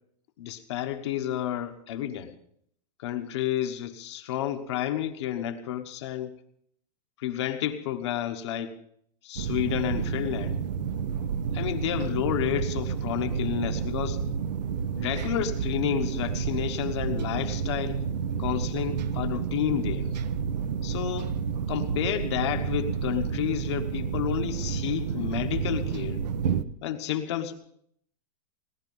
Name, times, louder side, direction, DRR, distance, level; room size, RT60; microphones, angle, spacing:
voice 1, 0.4-2.3 3.0-6.3 7.2-8.8 9.2-10.6 11.5-14.2 14.9-18.0 18.4-20.1 20.8-21.3 21.7-26.2 26.8-27.5, left 11 dB, 45° left, 6 dB, 1.2 m, -30 dB
sound 1, 9.4-26.6, right 6 dB, 85° right, 0.9 m, -30 dB
18.0 x 11.5 x 5.4 m, 0.66 s
supercardioid pair, 180°, 21 cm